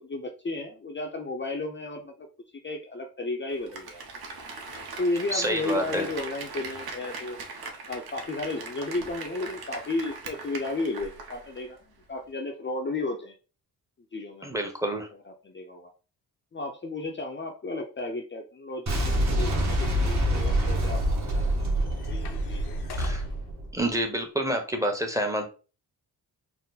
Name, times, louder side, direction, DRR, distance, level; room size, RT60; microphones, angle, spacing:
voice 1, 0.0-2.3 2.6-4.1 5.0-7.4 7.9-13.4 14.1-14.5 15.1-15.9 16.5-22.8, left 2 dB, 30° left, 2 dB, 0.5 m, -33 dB
Applause, 3.5-11.7 12.0-12.1, right 3 dB, 70° right, 1.0 m, -40 dB
voice 2, 5.3-6.1 14.4-15.1 23.0-23.2 23.7-25.5, right 1 dB, 10° right, 4 dB, 0.8 m, -28 dB
Boom, 18.9-23.8, right 1 dB, 45° right, 1.3 m, -26 dB
sound 1, 19.8-23.6, left 1 dB, 85° left, 0.8 m, -39 dB
4.4 x 2.0 x 3.9 m, 0.35 s
wide cardioid pair, 115°, 38 cm